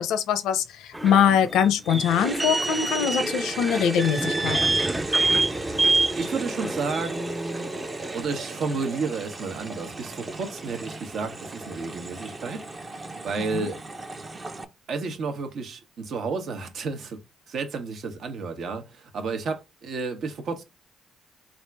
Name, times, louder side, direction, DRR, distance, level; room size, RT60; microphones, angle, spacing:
voice 1, 0.0-4.6 13.4-13.7, left 8 dB, 90° left, 0.7 m, -23 dB
sound 1, 0.9-8.2, right 2 dB, 10° right, 0.3 m, -27 dB
sound 2, 2.0-14.6, right 2 dB, 30° right, 0.7 m, -36 dB
voice 2, 6.2-7.7 8.1-12.6 12.9-13.8 14.9-17.2 17.5-20.6, right 4 dB, 65° right, 1.0 m, -31 dB
3.5 x 2.6 x 4.5 m
cardioid pair, 90°, 0 cm